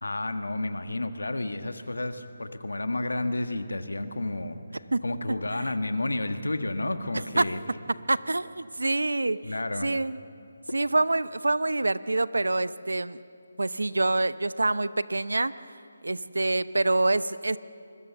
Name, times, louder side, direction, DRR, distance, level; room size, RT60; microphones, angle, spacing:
voice 1, 0.0-4.6 5.0-7.6 9.4-9.9, left 2 dB, 85° left, 8 dB, 1.6 m, -31 dB
voice 2, 8.1-9.4 9.8-10.2 10.7-13.2 13.6-15.5 16.0-17.6, right 2 dB, 85° right, 16 dB, 0.7 m, -26 dB
25.0 x 21.5 x 7.0 m, 2.4 s
figure-of-eight pair, 155°, 0 cm